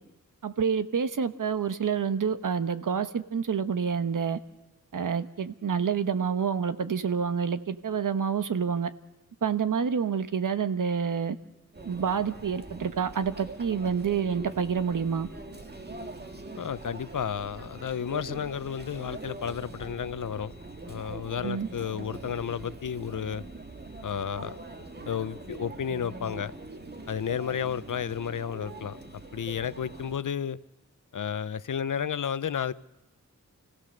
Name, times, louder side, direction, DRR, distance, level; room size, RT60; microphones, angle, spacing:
voice 1, 0.4-4.4 4.9-8.9 9.4-11.4 11.8-15.3 21.4-21.7, right 6 dB, 80° right, 1.1 m, -28 dB
Conversation / Chatter / Crowd, 11.7-30.2, right 2 dB, 30° right, 1.9 m, -43 dB
voice 2, 16.6-20.5 20.9-23.4 24.0-24.6 25.0-26.5 27.1-29.0 29.3-30.6 31.1-32.7, left 8 dB, 80° left, 0.7 m, -32 dB
29.5 x 16.5 x 6.6 m
wide cardioid pair, 105°, 31 cm